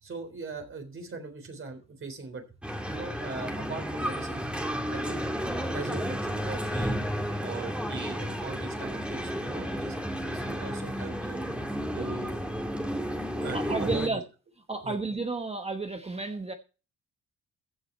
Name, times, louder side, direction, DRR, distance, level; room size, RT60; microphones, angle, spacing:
voice 1, 0.0-2.4 2.9-4.4 4.9-5.2 5.7-6.9 7.4-11.4 11.9-12.4 13.4-14.2 14.8-15.0, right 3 dB, 45° right, 3.7 m, -39 dB
sound 1, 2.6-14.1, equal, 5° right, 2.1 m, -32 dB
voice 2, 13.2-14.2 14.7-16.5, right 3 dB, 20° right, 1.1 m, -32 dB
15.0 x 6.3 x 4.3 m
cardioid pair, 90°, 30 cm